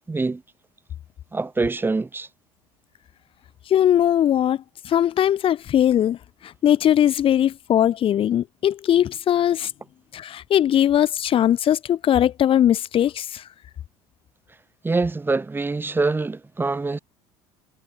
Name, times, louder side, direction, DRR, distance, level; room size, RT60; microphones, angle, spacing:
voice 1, 0.1-0.4 1.3-2.3 14.8-17.0, right 3 dB, 15° right, 2.2 m, -24 dB
voice 2, 3.7-4.6 4.8-6.2 6.6-9.7 10.1-13.4, left 10 dB, 45° left, 1.5 m, -20 dB
supercardioid pair, 85°, 12 cm